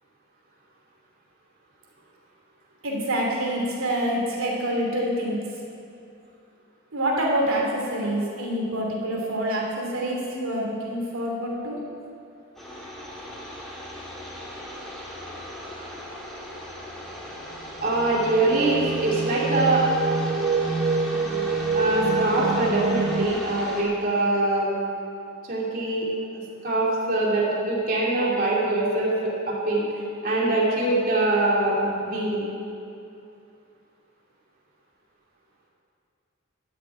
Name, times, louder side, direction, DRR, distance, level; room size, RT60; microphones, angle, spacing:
voice 1, 2.8-5.4 6.9-11.8, right 1 dB, 85° right, -2 dB, 2.7 m, -26 dB
sound 1, 12.6-23.8, equal, ahead, 2.3 m, -37 dB
sound 2, 17.8-23.3, right 4 dB, 25° right, 0.3 m, -26 dB
voice 2, 17.8-19.8 21.7-24.7 25.5-26.1 26.6-29.1 29.5-29.9 30.2-32.4, right 2 dB, 45° right, -5 dB, 2.7 m, -23 dB
12.5 x 7.0 x 8.8 m, 2.6 s
head